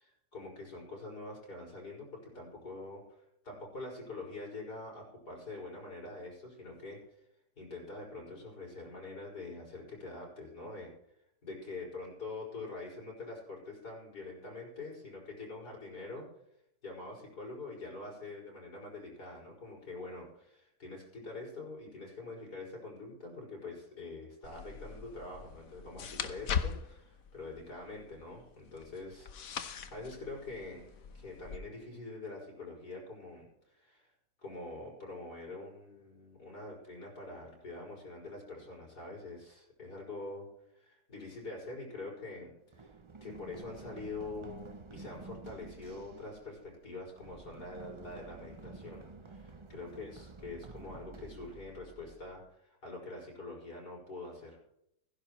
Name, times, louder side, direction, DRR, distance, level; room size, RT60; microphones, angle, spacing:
voice 1, 0.0-7.0 7.6-10.9 11.4-16.3 16.8-34.1 34.4-40.5 40.7-42.9 43.2-54.6, left 2 dB, 80° left, -2 dB, 6.2 m, -45 dB
sound 1, 24.4-31.6, left 7 dB, 60° left, 1.3 m, -41 dB
Run, 42.7-52.5, right 3 dB, 45° right, 0.3 m, -51 dB
16.0 x 15.5 x 3.1 m, 0.78 s
omnidirectional pair, 1.7 m